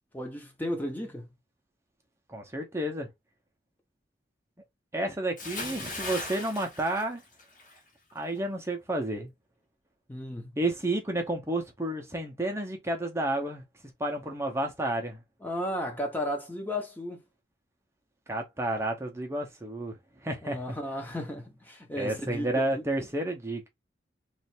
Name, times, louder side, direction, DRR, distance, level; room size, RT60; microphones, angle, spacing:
voice 1, 0.1-1.3 10.1-10.5 15.4-17.2 20.4-22.8, equal, 10° left, 0.9 m, -34 dB
voice 2, 2.3-3.1 4.9-7.2 8.1-9.3 10.6-13.6 14.0-15.2 18.3-20.0 20.2-20.8 22.0-23.7, right 1 dB, 15° right, 0.8 m, -31 dB
Bathtub (filling or washing) / Splash splatter, 5.4-7.8 8.1-8.4, left 2 dB, 45° left, 1.6 m, -38 dB
3.2 x 2.6 x 4.2 m
head